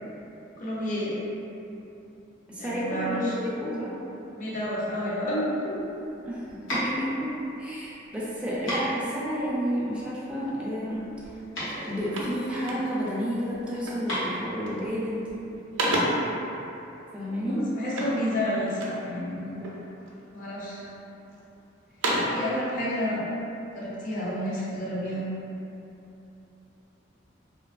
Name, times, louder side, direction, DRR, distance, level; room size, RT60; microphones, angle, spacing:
voice 1, 0.6-1.2 2.5-3.3 4.3-5.8 17.3-19.6 20.3-20.8 22.2-23.2 23.7-25.2, equal, 40° left, -8 dB, 0.5 m, -30 dB
voice 2, 2.5-4.0 6.2-7.3 7.6-11.1 11.6-15.3 17.1-17.6, equal, 5° right, -8 dB, 0.3 m, -31 dB
sound 1, 5.8-15.6, equal, 70° left, 0.9 m, -36 dB
sound 2, 11.2-11.4 11.7-13.2 13.8-14.2 14.5-15.0 15.3-16.4 17.9-19.1 19.6-20.2 20.8-21.4 21.8-22.5, right 1 dB, 70° right, 0.4 m, -31 dB
2.7 x 2.2 x 2.3 m, 2.9 s
head